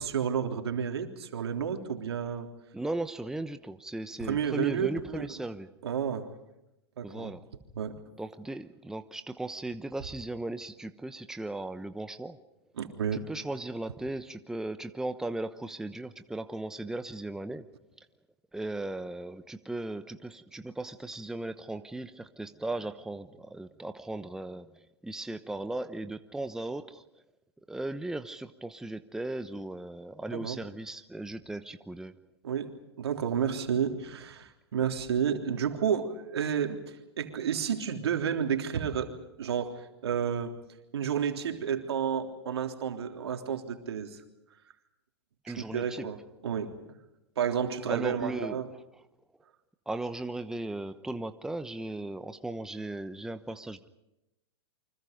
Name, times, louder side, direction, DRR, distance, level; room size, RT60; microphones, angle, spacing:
voice 1, 0.0-2.5 4.2-5.3 5.8-6.3 7.0-7.3 7.7-8.0 12.8-13.2 30.3-30.6 32.4-32.7 33.0-40.5 40.9-44.2 45.5-46.2 46.4-46.7 47.4-48.7, right 7 dB, 75° right, 4 dB, 3.4 m, -31 dB
voice 2, 2.7-5.7 7.0-7.4 8.2-12.4 13.1-17.7 18.5-27.0 27.7-32.1 45.4-46.1 47.9-49.0 49.9-53.9, right 2 dB, 5° right, 9 dB, 1.0 m, -37 dB
29.0 x 25.0 x 5.2 m, 0.91 s
hypercardioid pair, 115°, 14 cm